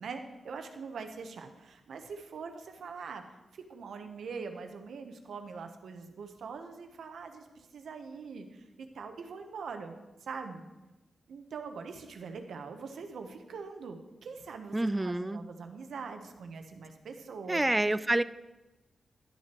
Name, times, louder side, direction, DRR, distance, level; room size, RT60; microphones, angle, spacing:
voice 1, 0.0-3.2 3.5-9.9 10.2-10.7 11.3-17.6, right 5 dB, 85° right, 6 dB, 0.8 m, -43 dB
voice 2, 14.7-15.4 17.5-18.2, right 1 dB, 15° right, 15 dB, 0.3 m, -28 dB
11.5 x 7.4 x 3.0 m, 1.1 s
cardioid pair, 75°, 0 cm